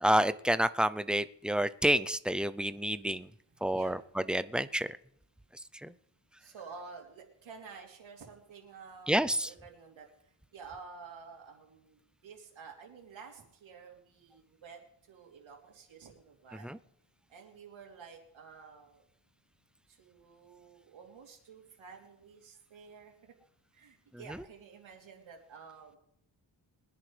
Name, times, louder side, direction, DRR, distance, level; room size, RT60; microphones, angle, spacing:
voice 1, 0.0-3.3 3.6-4.0 4.3-4.9 5.8-5.9 9.1-9.5 16.6-16.8, right 1 dB, ahead, 13 dB, 0.4 m, -28 dB
voice 2, 2.8-3.2 3.6-4.0 6.4-16.8 17.3-19.0 19.9-23.3 23.7-26.0, right 5 dB, 85° right, 0 dB, 3.2 m, -51 dB
22.5 x 10.5 x 3.3 m, 0.72 s
cardioid pair, 95°, 45 cm